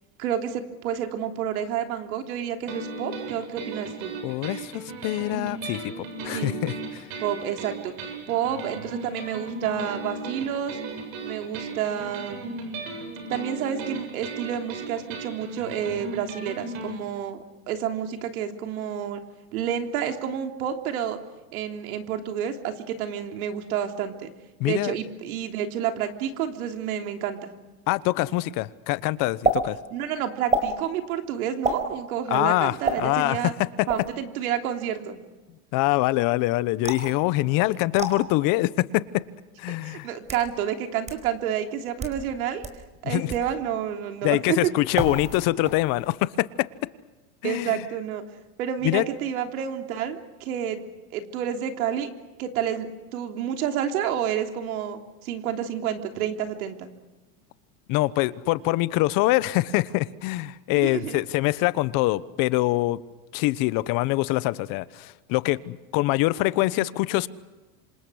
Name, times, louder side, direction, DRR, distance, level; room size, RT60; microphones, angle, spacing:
voice 1, 0.2-4.2 6.3-6.6 7.2-7.9 8.3-10.8 11.2-12.7 13.3-19.2 19.5-21.2 21.5-24.3 24.6-27.5 29.9-33.5 33.9-35.2 39.8-42.7 43.0-44.6 47.4-48.2 48.6-50.8 51.1-52.1 52.4-56.9 60.8-61.2, right 9 dB, 85° right, 3.3 m, -29 dB
sound 1, 2.7-16.9, right 3 dB, 65° right, 7.8 m, -36 dB
voice 2, 4.2-6.7 24.6-24.9 27.9-29.8 32.3-33.9 35.7-39.2 39.6-40.1 43.0-43.3 44.2-46.7 47.4-47.8 48.8-49.0 57.9-63.0 63.3-67.3, left 18 dB, 50° left, 1.1 m, -24 dB
sound 2, 29.4-29.6 30.5-30.7 31.6-31.8 32.8-33.0 33.9-34.1 36.8-37.1 38.0-38.1 39.1-39.2 40.0-40.5 41.1-41.2 41.9-42.2 42.6-42.7 43.3-43.5 44.9-45.4 45.7-46.1, right 3 dB, 15° right, 4.6 m, -27 dB
27.0 x 26.5 x 6.4 m
supercardioid pair, 135°, 42 cm